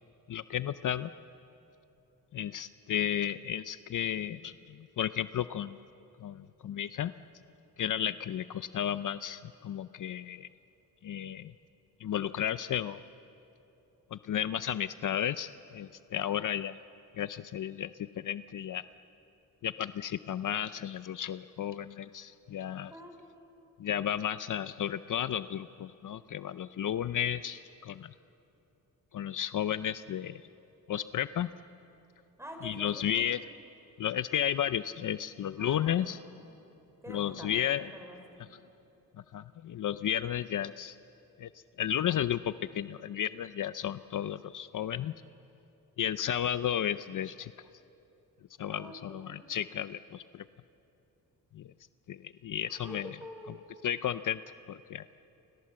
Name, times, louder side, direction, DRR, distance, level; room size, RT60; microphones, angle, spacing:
voice 1, 0.3-1.1 2.3-5.8 6.2-7.1 7.8-10.5 11.0-11.5 12.0-13.0 14.1-16.8 17.2-18.8 19.6-22.9 23.8-28.1 29.1-30.4 30.9-31.5 32.6-33.4 34.0-36.2 37.1-37.9 39.3-41.0 41.4-41.5 41.8-45.1 46.0-47.5 48.6-50.4 51.5-51.7 52.1-53.1 53.8-54.4 54.7-55.1, left 10 dB, 60° left, 13 dB, 0.6 m, -33 dB
voice 2, 22.9-23.6 32.4-33.2 35.6-36.4 37.0-38.5 48.6-49.3 52.8-53.6, equal, 5° right, 3 dB, 5.0 m, -48 dB
30.0 x 24.0 x 7.6 m, 2.9 s
cardioid pair, 105°, 36 cm